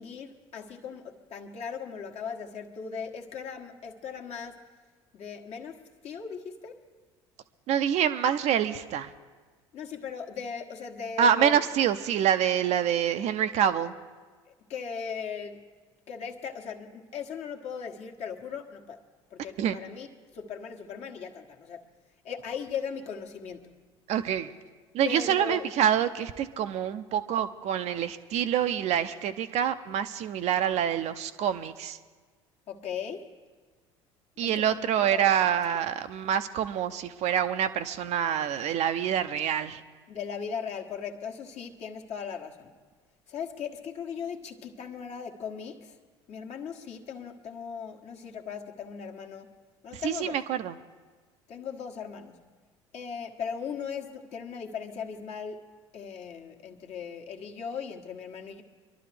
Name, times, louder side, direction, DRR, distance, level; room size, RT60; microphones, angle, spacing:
voice 1, 0.0-4.6 5.1-6.8 9.7-11.6 14.5-15.7 16.1-19.0 19.3-20.1 20.3-21.9 22.2-23.8 25.0-25.6 32.7-33.3 34.4-35.3 40.1-42.7 43.3-46.0 46.3-49.6 49.8-50.4 51.5-52.5 52.9-55.6 55.9-58.6, left 6 dB, 45° left, 2 dB, 1.3 m, -38 dB
voice 2, 7.7-9.1 11.2-13.9 19.6-19.8 24.1-24.5 24.9-32.0 34.4-39.8 49.9-50.7, right 9 dB, 50° right, 10 dB, 0.6 m, -26 dB
24.0 x 12.0 x 3.4 m, 1.4 s
figure-of-eight pair, 65°, 15 cm